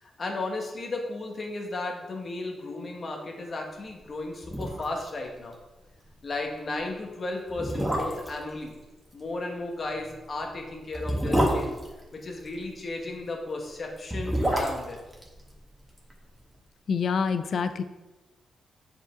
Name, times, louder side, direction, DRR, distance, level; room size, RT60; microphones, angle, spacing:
voice 1, 0.0-5.5 6.2-8.7 9.1-11.8 12.1-15.0, left 2 dB, 45° left, 2 dB, 1.4 m, -34 dB
sound 1, 4.1-4.2 4.4-5.1 5.4-5.5 5.9-6.0 6.7-6.8 7.5-8.4 9.9-12.6 13.9-16.1 16.4-16.5, equal, 5° right, 1.5 m, -28 dB
voice 2, 16.9-17.8, left 5 dB, 60° left, 10 dB, 0.3 m, -26 dB
8.1 x 5.1 x 3.7 m, 1.1 s
cardioid pair, 100°, 0 cm